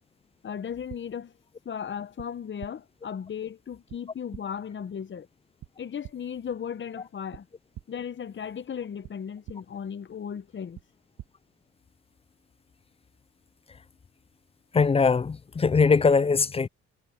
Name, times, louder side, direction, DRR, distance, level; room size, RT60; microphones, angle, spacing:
voice 1, 0.4-1.4 1.6-5.3 5.8-7.5 7.9-10.8, left 7 dB, 40° left, 0.9 m, -36 dB
sound 1, 0.9-1.0 2.2-2.3 2.6-2.7 3.9-4.0 4.3-4.4 5.6-5.7 6.0-6.1 7.3-7.4 7.7-7.8 9.0-9.1 9.5-9.6 10.7-10.8 11.2-11.3, right 13 dB, 80° right, 2.6 m, -42 dB
voice 2, 14.7-16.7, left 4 dB, 20° left, 0.4 m, -21 dB
cardioid pair, 90°, 30 cm